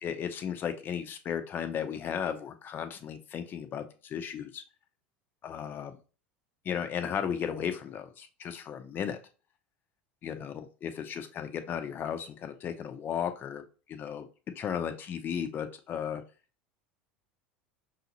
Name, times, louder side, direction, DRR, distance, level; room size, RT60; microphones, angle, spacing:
voice 1, 0.0-4.6 5.4-5.9 6.6-9.2 10.2-13.6 13.9-14.3 14.6-16.2, left 8 dB, 40° left, 7 dB, 0.6 m, -35 dB
5.6 x 2.7 x 2.8 m, 0.36 s
hypercardioid pair, 80°, 6 cm